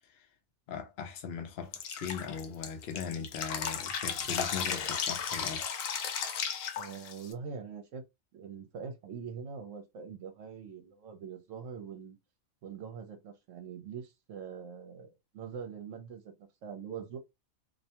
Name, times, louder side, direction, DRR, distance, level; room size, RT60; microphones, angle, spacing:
voice 1, 0.7-5.6, left 6 dB, 55° left, 0.7 m, -39 dB
Drip, 1.7-7.3, left 7 dB, 75° left, 1.0 m, -35 dB
voice 2, 6.8-8.0 8.3-12.2 12.6-17.2, right 6 dB, 70° right, 0.9 m, -43 dB
2.5 x 2.1 x 2.8 m
omnidirectional pair, 1.4 m